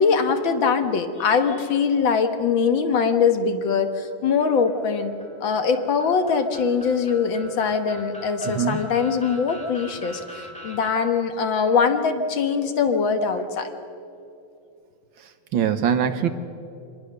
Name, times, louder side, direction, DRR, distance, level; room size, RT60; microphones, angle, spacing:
voice 1, 0.0-5.2 5.4-10.2 10.6-13.7, left 5 dB, 65° left, 7 dB, 2.0 m, -22 dB
sound 1, 4.4-10.9, equal, 5° left, 2.1 m, -43 dB
voice 2, 8.4-8.9 15.5-16.3, right 8 dB, 70° right, 10 dB, 1.8 m, -22 dB
25.5 x 20.0 x 6.7 m, 2.7 s
omnidirectional pair, 2.3 m